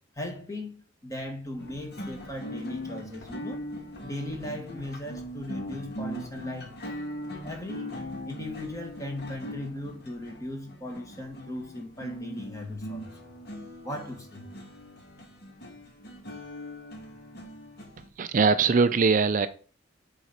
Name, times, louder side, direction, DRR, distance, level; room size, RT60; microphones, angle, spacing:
voice 1, 0.1-3.6 4.0-7.0 7.4-7.9 8.3-13.3 13.8-14.4, left 1 dB, 20° left, 3 dB, 1.6 m, -38 dB
sound 1, 1.6-18.1, equal, 60° left, 1.6 m, -40 dB
voice 2, 18.2-19.5, right 4 dB, 45° right, 11 dB, 0.4 m, -21 dB
8.0 x 4.0 x 5.6 m, 0.41 s
head